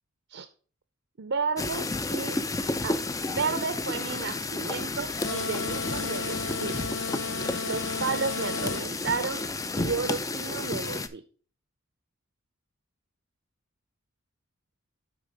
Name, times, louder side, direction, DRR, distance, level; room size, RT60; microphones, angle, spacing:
voice 1, 1.2-2.4 2.8-3.0 3.3-6.8 7.6-9.4 9.7-11.2, right 5 dB, 60° right, 11 dB, 0.5 m, -32 dB
sound 1, 1.6-11.1, left 2 dB, 15° left, 0.4 m, -32 dB
sound 2, 5.2-8.9, left 4 dB, 60° left, 1.2 m, -34 dB
8.4 x 4.4 x 5.0 m, 0.41 s
head